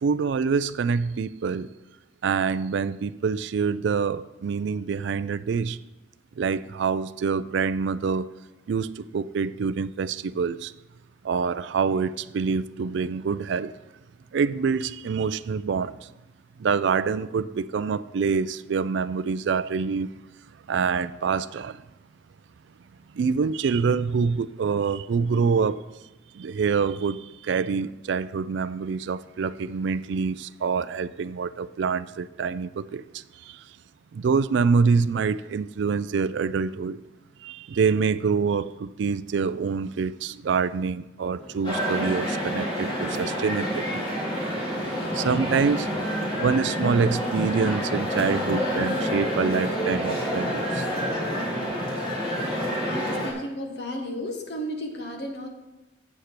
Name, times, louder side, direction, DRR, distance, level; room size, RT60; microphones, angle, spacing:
voice 1, 0.0-1.7 2.2-5.8 6.4-8.3 8.7-10.7 11.2-13.7 14.3-16.1 16.6-20.2 20.7-21.8 23.1-25.9 26.3-33.6 34.1-37.0 37.4-44.1 45.1-46.0 46.3-50.9, right 5 dB, 65° right, 15 dB, 0.3 m, -26 dB
sound 1, 41.3-51.2, equal, 5° left, 2.4 m, -46 dB
sound 2, 41.6-53.3, equal, 25° left, 1.9 m, -28 dB
voice 2, 52.9-55.5, equal, 55° left, 2 dB, 1.4 m, -33 dB
8.1 x 5.8 x 6.6 m, 1.0 s
head